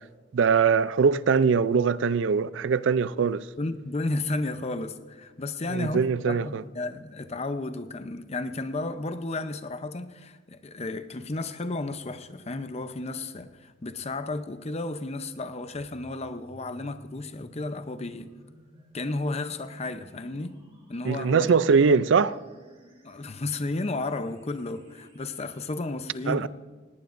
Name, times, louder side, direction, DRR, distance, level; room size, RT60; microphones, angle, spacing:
voice 1, 0.3-3.4 5.7-6.6 21.1-22.3 26.3-26.5, right 5 dB, 65° right, 0.4 m, -22 dB
voice 2, 3.6-18.3 18.9-20.6 20.9-22.0 23.0-26.5, left 2 dB, 35° left, 0.7 m, -33 dB
sound 1, 15.7-25.8, equal, 30° right, 3.3 m, -54 dB
18.5 x 18.0 x 2.6 m
head